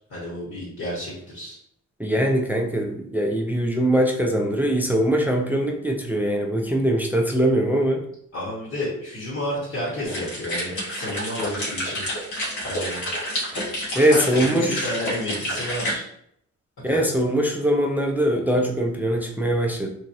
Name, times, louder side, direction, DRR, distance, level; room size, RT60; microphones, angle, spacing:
voice 1, 0.1-1.6 8.3-12.0 12.6-13.0 14.1-16.1 16.9-17.2, left 1 dB, 50° left, -6 dB, 1.4 m, -31 dB
voice 2, 2.0-8.0 13.9-14.9 16.8-19.9, right 1 dB, 5° right, 1 dB, 0.4 m, -22 dB
sound 1, 10.0-15.9, equal, 70° left, 1.4 m, -29 dB
3.1 x 2.5 x 2.6 m, 0.70 s
cardioid pair, 90°, 30 cm